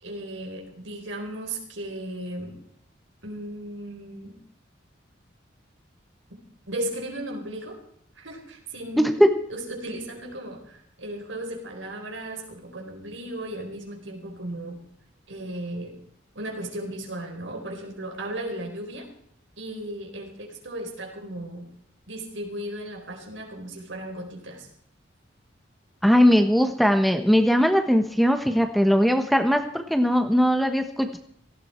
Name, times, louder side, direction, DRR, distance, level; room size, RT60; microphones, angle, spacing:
voice 1, 0.0-2.6 3.2-4.4 6.3-6.4 6.7-7.8 8.1-9.1 9.5-14.8 15.3-16.0 16.3-19.1 19.6-21.7 22.1-24.7, right 1 dB, 80° right, 2 dB, 4.5 m, -35 dB
voice 2, 9.0-9.3 26.0-31.2, equal, ahead, 6 dB, 1.2 m, -20 dB
17.5 x 16.5 x 4.5 m, 0.67 s
head